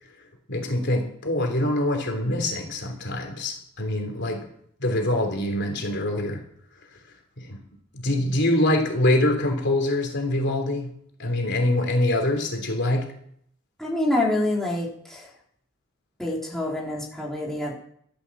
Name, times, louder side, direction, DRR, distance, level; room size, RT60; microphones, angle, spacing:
voice 1, 0.5-4.4 4.8-6.4 7.4-7.6 7.9-10.9 11.2-13.1, left 1 dB, 55° left, 4 dB, 3.4 m, -24 dB
voice 2, 13.8-15.3 16.2-17.7, left 1 dB, ahead, -4 dB, 3.8 m, -26 dB
14.0 x 13.5 x 7.3 m, 0.66 s
head